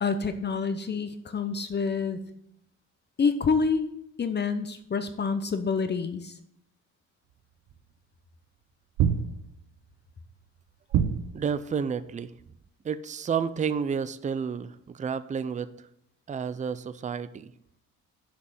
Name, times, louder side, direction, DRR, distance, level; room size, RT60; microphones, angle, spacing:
voice 1, 0.0-2.2 3.2-3.9 4.2-6.3, left 5 dB, 35° left, 9 dB, 0.7 m, -27 dB
sound 1, 7.7-7.8 9.0-9.8 10.9-11.7, right 8 dB, 75° right, 0.7 m, -26 dB
voice 2, 11.3-12.3 12.8-15.7 16.3-17.5, right 6 dB, 25° right, 14 dB, 0.4 m, -30 dB
6.7 x 5.3 x 6.0 m, 0.74 s
cardioid pair, 90°, 30 cm